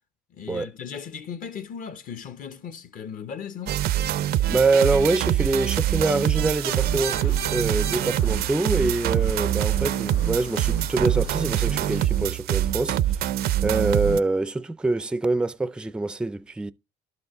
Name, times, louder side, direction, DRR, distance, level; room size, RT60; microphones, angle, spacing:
voice 1, 0.3-3.8, left 7 dB, 55° left, 1.0 m, -37 dB
sound 1, 3.7-14.2, right 12 dB, 65° right, 0.4 m, -24 dB
voice 2, 4.5-13.0 13.6-16.7, right 3 dB, 5° right, 0.4 m, -25 dB
sound 2, 6.6-12.1, left 9 dB, 80° left, 0.7 m, -41 dB
12.0 x 4.8 x 3.7 m
cardioid pair, 110°, 17 cm